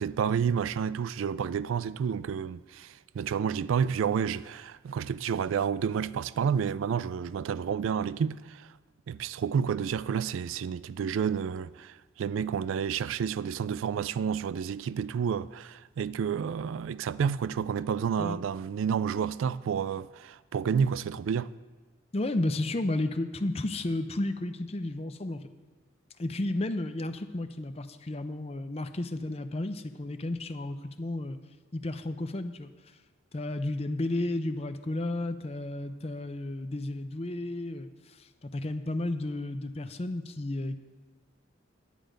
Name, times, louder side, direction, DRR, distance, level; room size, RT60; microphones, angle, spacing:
voice 1, 0.0-8.7 9.1-21.5, right 7 dB, 85° right, 0.3 m, -30 dB
voice 2, 22.1-25.4 26.2-31.4 31.7-32.7 33.3-40.8, left 2 dB, 30° left, 0.5 m, -32 dB
10.0 x 9.0 x 5.1 m
head